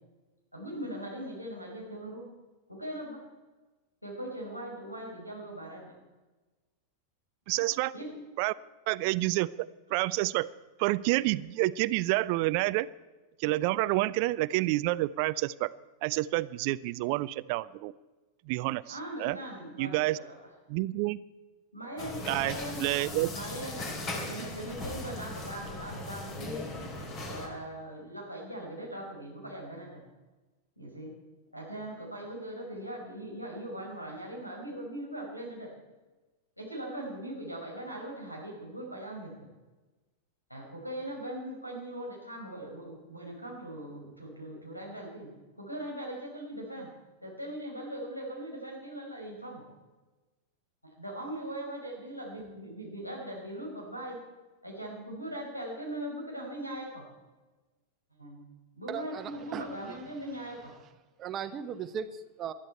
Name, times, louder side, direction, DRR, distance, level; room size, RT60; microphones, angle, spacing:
voice 1, 0.5-2.3 2.7-3.2 4.0-5.9 7.9-8.1 18.9-20.5 21.7-22.9 23.3-26.7 27.3-30.0 30.8-31.1 31.5-35.7 36.6-39.3 40.5-45.3 45.6-46.9 47.2-49.6 51.0-54.2 54.6-57.0 58.2-58.4 58.7-60.7, right 1 dB, 90° left, 0 dB, 4.7 m, -40 dB
voice 2, 7.5-7.9 8.4-8.5 8.9-10.5 10.8-12.9 13.4-15.7 16.0-17.9 18.5-19.4 19.8-20.2 20.7-21.2 22.3-23.3, right 19 dB, 45° right, 19 dB, 0.4 m, -29 dB
sound 1, 22.0-27.5, left 2 dB, 35° left, 3.0 m, -38 dB
voice 3, 58.9-60.0 61.2-62.5, right 8 dB, 30° right, 11 dB, 1.0 m, -38 dB
20.0 x 12.5 x 4.4 m, 1.2 s
figure-of-eight pair, 90°, 0 cm